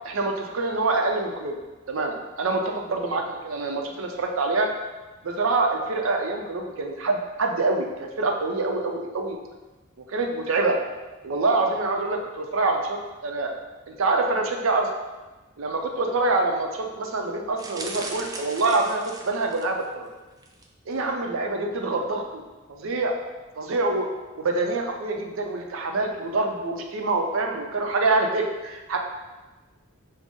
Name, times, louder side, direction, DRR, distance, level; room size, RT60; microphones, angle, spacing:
voice 1, 0.0-1.6 1.9-4.7 5.2-9.4 10.1-10.8 11.2-13.5 13.9-14.9 15.6-20.1 20.9-22.4 22.7-23.1 23.6-24.1 24.4-29.0, right 3 dB, 80° right, 2 dB, 0.5 m, -25 dB
sound 1, 17.6-19.9 20.4-20.7 20.9-21.0, right 2 dB, 20° right, 0.3 m, -38 dB
5.1 x 2.0 x 3.5 m, 1.2 s
head